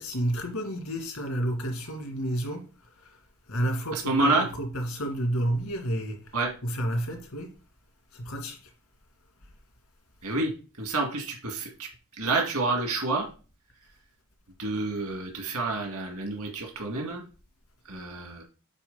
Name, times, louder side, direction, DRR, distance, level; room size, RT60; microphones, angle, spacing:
voice 1, 0.0-2.7 3.0-3.1 3.5-6.2 6.6-7.5 8.1-8.6, right 1 dB, 80° left, 2.3 m, -30 dB
voice 2, 3.9-4.5 6.3-6.5 10.2-11.9 12.2-13.3 14.6-17.2 17.9-18.4, right 3 dB, 75° right, 2.0 m, -28 dB
9.1 x 3.9 x 3.9 m
head